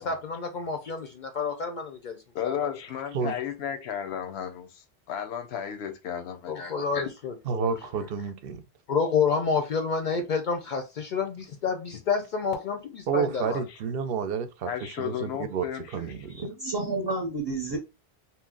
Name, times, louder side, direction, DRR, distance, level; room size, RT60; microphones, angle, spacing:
voice 1, 0.0-2.2 2.4-2.7 6.5-7.8 8.9-13.4, left 5 dB, 60° left, 0.6 m, -29 dB
voice 2, 2.3-6.6 13.4-13.6 14.6-16.1, left 8 dB, 85° left, 0.9 m, -34 dB
voice 3, 7.4-8.6 13.1-15.6 15.9-16.4, right 7 dB, 70° right, 0.7 m, -30 dB
voice 4, 16.2-17.8, right 2 dB, 30° right, 0.6 m, -30 dB
2.8 x 2.0 x 3.7 m
omnidirectional pair, 1.1 m